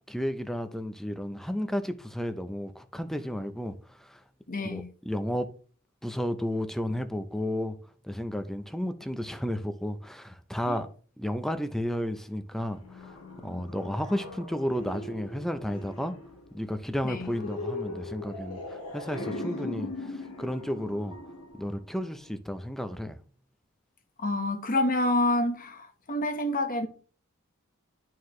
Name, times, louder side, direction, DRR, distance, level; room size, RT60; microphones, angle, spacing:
voice 1, 0.1-4.2 4.6-5.5 6.0-7.8 8.0-10.9 11.2-16.1 16.5-21.2 21.6-23.2, equal, ahead, 0.6 m, -33 dB
voice 2, 4.5-4.9 10.7-10.8 17.0-17.4 24.2-26.9, left 1 dB, 40° left, 1.2 m, -28 dB
sound 1, 12.7-22.3, left 2 dB, 80° left, 1.8 m, -40 dB
11.0 x 4.7 x 3.1 m
head